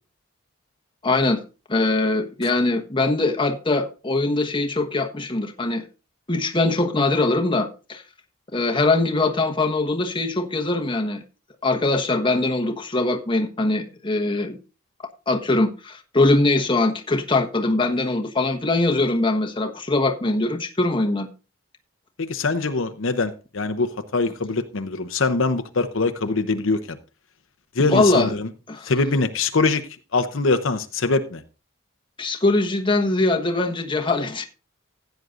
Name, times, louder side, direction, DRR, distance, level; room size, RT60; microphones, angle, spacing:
voice 1, 1.0-1.4 1.7-5.8 6.3-8.0 8.5-11.2 11.6-14.6 15.3-21.3 27.8-28.3 28.7-28.9 32.2-34.4, left 2 dB, 25° left, 1.2 m, -22 dB
voice 2, 22.2-27.0 27.7-28.5 28.8-29.8 30.1-31.4, left 3 dB, 65° left, 0.8 m, -23 dB
16.0 x 9.3 x 2.5 m
head